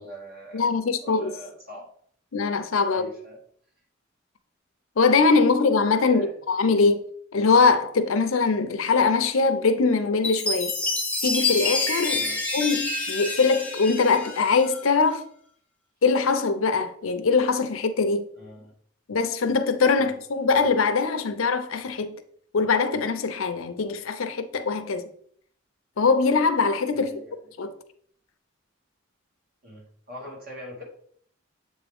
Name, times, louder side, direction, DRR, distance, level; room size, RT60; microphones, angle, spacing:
voice 1, 0.0-0.7 1.0-1.9 2.9-3.4 6.1-6.4 12.1-12.4 18.4-18.7 20.0-20.2 26.9-27.3 29.6-30.8, equal, 50° right, 2.2 m, -42 dB
voice 2, 0.5-1.3 2.3-3.1 5.0-7.0 7.3-10.8 11.2-12.3 12.5-15.3 16.0-18.3 19.1-22.1 22.5-25.1 26.0-27.1 27.6-27.7, left 4 dB, 90° left, 0.6 m, -22 dB
Chime, 10.2-14.8, left 3 dB, 10° left, 0.9 m, -28 dB
7.6 x 3.5 x 3.5 m
head